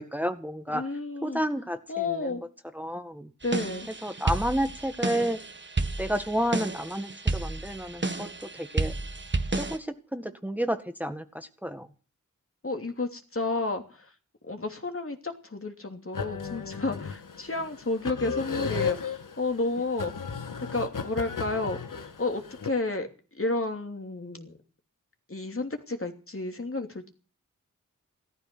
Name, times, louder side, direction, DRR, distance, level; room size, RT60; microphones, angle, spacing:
voice 1, 0.0-0.8 1.2-1.8 2.8-3.3 4.0-5.4 6.0-8.3 8.5-8.9 9.6-11.9, equal, 5° right, 7 dB, 1.8 m, -30 dB
voice 2, 0.7-1.4 1.9-2.4 3.4-3.9 12.6-14.1 14.4-20.1 20.6-21.8 22.2-24.5 25.3-27.1, left 3 dB, 45° left, 5 dB, 2.9 m, -31 dB
sound 1, 3.4-9.8, right 3 dB, 35° right, 1.6 m, -31 dB
sound 2, 16.1-22.7, left 6 dB, 85° left, 1.8 m, -35 dB
15.5 x 13.5 x 6.2 m, 0.38 s
cardioid pair, 50°, 31 cm